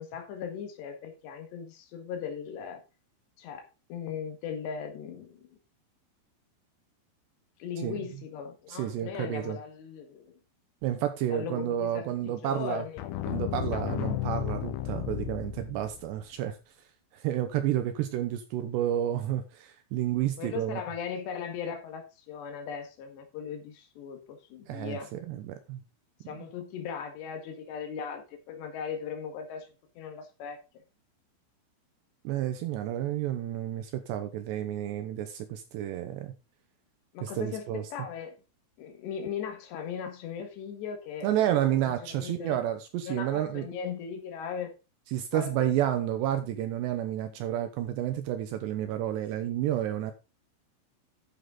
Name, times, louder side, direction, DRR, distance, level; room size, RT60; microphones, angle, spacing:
voice 1, 0.0-2.8 3.4-5.6 7.6-10.3 11.3-13.1 20.4-25.1 26.3-29.7 30.0-30.6 37.1-38.4 38.8-41.6 41.9-42.6 43.1-44.7 45.3-45.7, left 7 dB, 65° left, 3.6 m, -38 dB
voice 2, 8.7-9.6 10.8-12.9 13.3-16.6 17.1-20.8 24.7-25.8 26.3-26.4 32.2-36.3 37.2-37.8 41.2-43.6 45.1-50.1, right 11 dB, 85° right, 2.6 m, -30 dB
sound 1, 13.0-16.1, left 13 dB, 85° left, 3.4 m, -33 dB
11.5 x 6.9 x 3.8 m
omnidirectional pair, 5.8 m